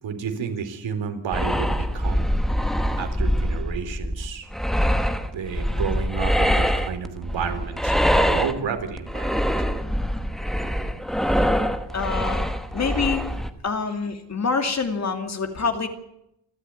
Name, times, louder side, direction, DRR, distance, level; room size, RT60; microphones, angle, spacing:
voice 1, 0.0-2.3 3.0-4.5 5.3-9.5, right 6 dB, 75° right, 6 dB, 4.0 m, -31 dB
sound 1, 1.3-13.5, equal, ahead, 1.2 m, -24 dB
voice 2, 10.6-11.0 11.4-11.5 11.9-13.3 13.6-15.9, left 5 dB, 35° left, 6 dB, 2.6 m, -27 dB
29.5 x 12.5 x 9.7 m, 0.82 s
wide cardioid pair, 175°, 45 cm